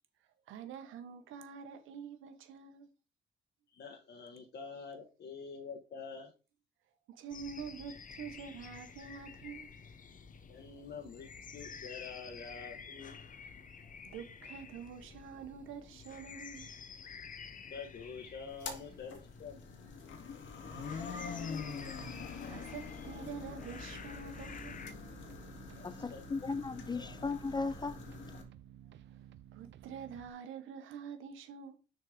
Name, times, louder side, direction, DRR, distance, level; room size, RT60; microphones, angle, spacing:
voice 1, 0.5-2.9 7.1-9.7 14.0-16.7 20.8-21.4 22.1-24.8 29.5-31.8, right 6 dB, 85° right, 1.4 m, -47 dB
voice 2, 3.7-6.3 10.5-13.2 16.6-16.7 17.7-20.1 25.8-26.2 26.9-27.1, left 5 dB, 60° left, 1.5 m, -47 dB
sound 1, 7.3-24.9, left 6 dB, 40° left, 1.0 m, -50 dB
sound 2, 18.5-28.4, left 5 dB, 75° left, 1.9 m, -45 dB
sound 3, 23.3-30.3, right 11 dB, 70° right, 0.6 m, -55 dB
voice 3, 25.8-28.0, left 4 dB, 20° left, 0.4 m, -36 dB
6.6 x 4.3 x 5.1 m
cardioid pair, 90°, 20 cm